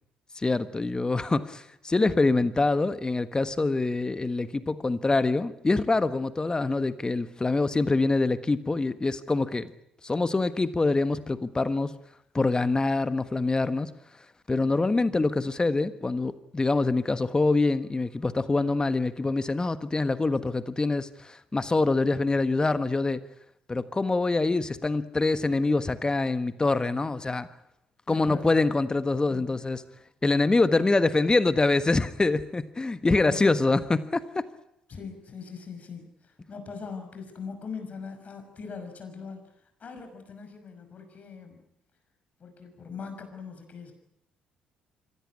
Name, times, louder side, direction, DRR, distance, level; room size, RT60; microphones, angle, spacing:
voice 1, 0.3-9.7 10.0-11.9 12.3-13.9 14.5-23.2 23.7-27.5 28.1-29.8 30.2-34.4, left 3 dB, 25° left, 13 dB, 1.4 m, -25 dB
voice 2, 14.9-15.5 28.1-28.5 29.3-29.6 33.0-33.6 34.9-41.6 42.4-43.9, left 5 dB, 45° left, 6 dB, 5.8 m, -41 dB
25.0 x 17.0 x 9.8 m, 0.81 s
hypercardioid pair, 50°, 3 cm